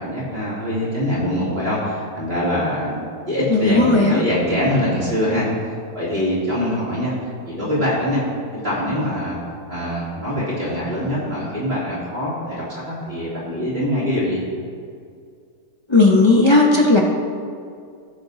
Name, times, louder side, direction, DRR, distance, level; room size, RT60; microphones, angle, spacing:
voice 1, 0.0-8.3 8.5-9.4 9.7-14.4, equal, 35° right, -10 dB, 3.1 m, -23 dB
voice 2, 3.5-4.2 15.9-17.0, left 2 dB, 40° left, 0 dB, 0.4 m, -14 dB
17.0 x 6.9 x 2.7 m, 2.3 s
omnidirectional pair, 1.7 m